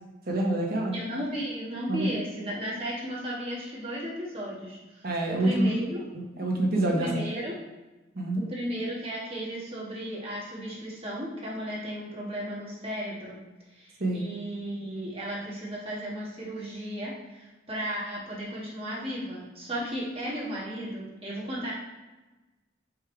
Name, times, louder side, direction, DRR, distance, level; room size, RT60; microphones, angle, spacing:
voice 1, 0.3-0.9 1.9-2.1 5.0-5.7 6.4-7.1 8.1-8.4 14.0-14.3, right 1 dB, 50° right, -1 dB, 1.3 m, -26 dB
voice 2, 0.9-4.8 5.3-6.0 7.0-7.6 8.4-13.4 13.7-21.7, equal, 30° right, -6 dB, 1.8 m, -34 dB
5.3 x 3.7 x 4.7 m, 1.1 s
head